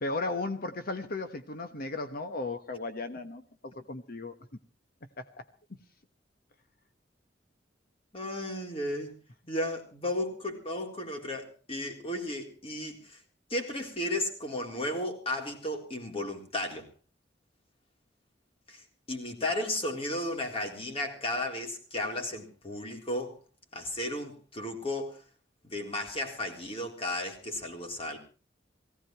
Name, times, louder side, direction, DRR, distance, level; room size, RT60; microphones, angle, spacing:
voice 1, 0.0-4.3 5.2-5.3, left 3 dB, 55° left, 1.2 m, -35 dB
voice 2, 8.1-9.1 9.5-13.2 13.5-16.9 18.7-18.8 19.1-23.4 23.7-25.2 25.6-28.2, left 1 dB, 35° left, 3.8 m, -34 dB
18.5 x 16.5 x 4.5 m
head